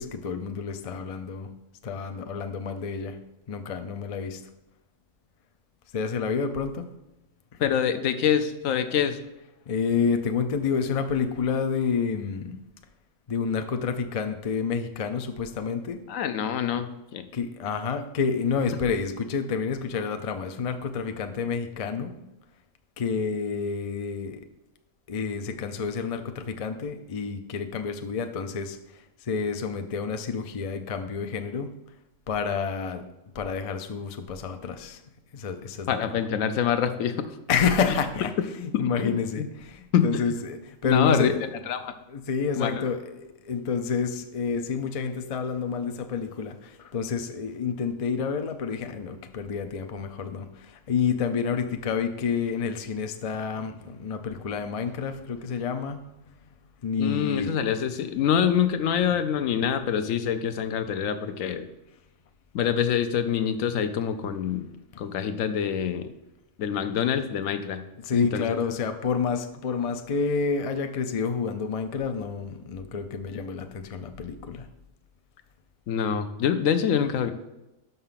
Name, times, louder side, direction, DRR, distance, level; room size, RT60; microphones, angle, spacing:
voice 1, 0.0-1.5 1.8-3.2 3.5-4.4 5.9-6.9 9.7-12.6 13.3-16.0 17.3-22.2 23.0-24.4 25.1-28.8 29.2-31.8 32.3-33.1 33.3-35.0 35.3-36.0 37.5-41.5 42.1-56.1 56.8-57.5 64.9-65.0 68.0-74.7, left 5 dB, 50° left, 7 dB, 0.4 m, -29 dB
voice 2, 7.6-9.2 16.1-17.3 35.9-37.3 38.7-39.5 39.9-40.2 40.8-41.9 42.6-42.8 57.0-61.7 62.5-64.7 65.0-66.1 66.6-67.8 68.1-68.4 75.9-77.3, left 8 dB, 80° left, 9 dB, 1.0 m, -26 dB
5.9 x 5.4 x 5.7 m, 0.96 s
omnidirectional pair, 1.4 m